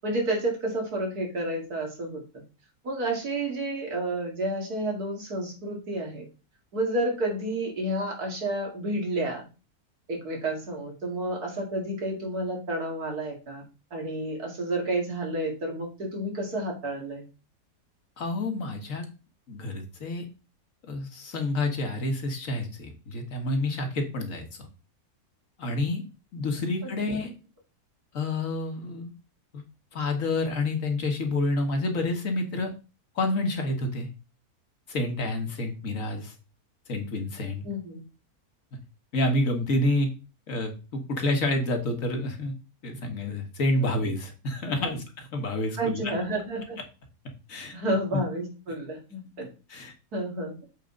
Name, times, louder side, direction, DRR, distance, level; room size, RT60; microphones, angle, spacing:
voice 1, 0.0-2.4 2.8-6.3 6.7-9.4 10.1-17.3 26.8-27.2 37.6-38.0 43.8-43.9 44.6-45.0 45.8-46.8 47.7-49.5 50.1-50.5, right 1 dB, 75° right, 0 dB, 2.7 m, -30 dB
voice 2, 18.2-19.1 19.5-20.3 20.8-24.5 25.6-26.0 26.3-27.3 28.1-29.1 29.5-29.6 29.9-32.7 33.2-34.1 34.9-36.3 36.9-37.7 39.1-40.1 40.5-42.5 42.8-46.1 47.5-47.7 48.1-48.2 49.7-49.9, left 2 dB, 60° left, 4 dB, 1.7 m, -28 dB
7.8 x 4.6 x 3.8 m, 0.32 s
omnidirectional pair, 1.6 m